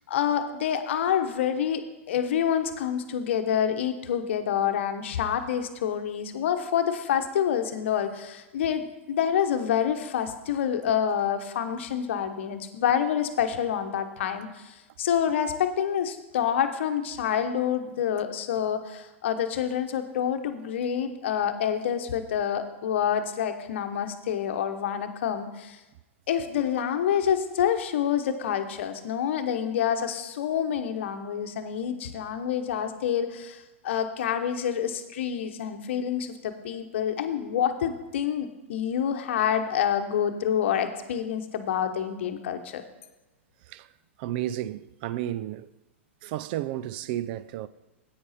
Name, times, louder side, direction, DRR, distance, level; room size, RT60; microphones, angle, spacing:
voice 1, 0.1-25.8 26.3-42.8, left 9 dB, 65° left, 1.0 m, -27 dB
voice 2, 44.2-45.7 46.2-47.7, right 13 dB, 50° right, 0.4 m, -32 dB
10.5 x 8.6 x 4.2 m
hypercardioid pair, 110°, 7 cm